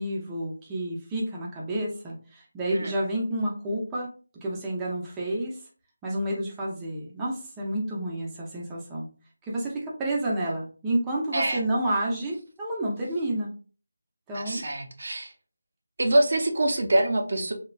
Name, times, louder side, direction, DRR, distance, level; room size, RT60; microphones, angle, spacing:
voice 1, 0.0-4.1 4.4-5.6 6.0-9.1 9.4-13.5 14.3-14.6, right 1 dB, 10° right, -4 dB, 0.6 m, -30 dB
voice 2, 14.3-15.3 16.0-17.5, right 1 dB, 60° right, 3 dB, 0.5 m, -25 dB
3.1 x 2.2 x 2.4 m, 0.38 s
figure-of-eight pair, 160°, 0 cm